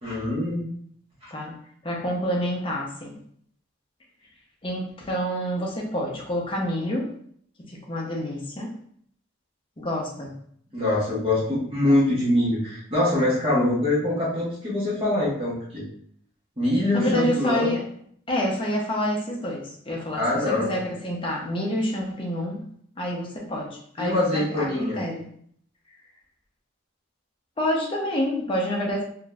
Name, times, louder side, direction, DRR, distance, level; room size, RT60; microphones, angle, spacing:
voice 1, 0.0-0.8 10.7-15.9 16.6-17.7 20.1-20.7 24.0-25.0, left 1 dB, 25° right, -7 dB, 1.1 m, -24 dB
voice 2, 1.8-3.2 4.6-7.1 7.7-8.7 9.8-10.3 16.9-17.8 18.3-22.6 23.0-25.2 27.6-29.0, equal, 25° left, -2 dB, 0.5 m, -28 dB
3.6 x 2.5 x 2.2 m, 0.63 s
head